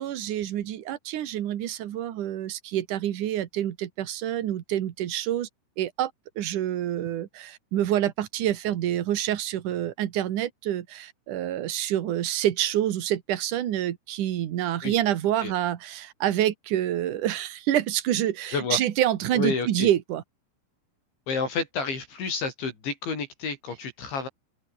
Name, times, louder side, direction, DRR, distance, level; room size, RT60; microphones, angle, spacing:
voice 1, 0.0-5.5 5.8-20.2, right 12 dB, 65° right, 2.0 m, -27 dB
voice 2, 19.3-19.9 21.3-24.3, left 4 dB, 60° left, 9.0 m, -30 dB
open air
omnidirectional pair, 5.9 m